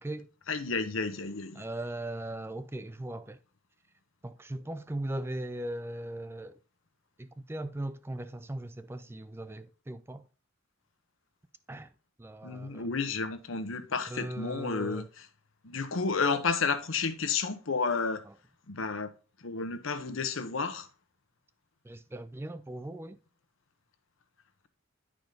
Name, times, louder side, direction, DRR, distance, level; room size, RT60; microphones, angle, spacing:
voice 1, 0.5-1.6 12.4-15.0 15.6-18.2 18.7-19.1 19.4-20.9, left 4 dB, 75° left, 0.9 m, -31 dB
voice 2, 1.5-3.4 4.2-6.6 7.2-10.3 11.7-11.9 12.2-12.9 14.1-15.1 18.3-18.4 21.8-23.2, right 1 dB, 10° right, 0.4 m, -38 dB
10.5 x 4.9 x 3.9 m
head